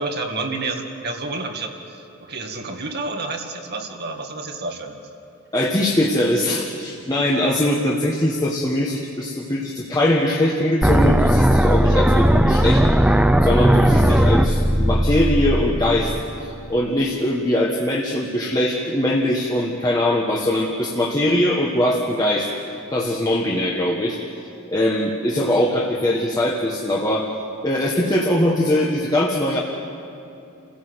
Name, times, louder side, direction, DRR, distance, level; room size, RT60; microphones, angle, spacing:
voice 1, 0.0-4.9, right 3 dB, 50° right, 3 dB, 1.9 m, -29 dB
voice 2, 5.5-13.1 13.4-16.1 16.4-22.5 22.9-24.2 24.7-27.3 27.6-29.6, left 1 dB, 15° left, -1 dB, 1.4 m, -21 dB
sound 1, 10.8-16.8, equal, 5° right, 0.6 m, -17 dB
29.0 x 15.5 x 8.0 m, 2.8 s
head